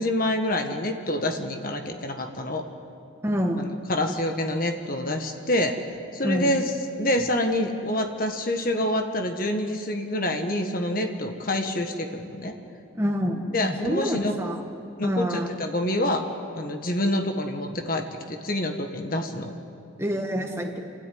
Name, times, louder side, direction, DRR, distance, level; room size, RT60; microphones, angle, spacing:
voice 1, 0.0-2.6 3.6-5.8 6.1-6.6 7.0-12.5 13.5-14.3 15.0-16.2 16.5-19.5, left 1 dB, 50° left, 5 dB, 1.6 m, -27 dB
voice 2, 3.2-3.7 6.2-6.5 12.9-14.6 15.0-15.5 20.0-20.8, equal, 15° right, 2 dB, 1.6 m, -27 dB
29.0 x 13.0 x 9.5 m, 2.6 s
head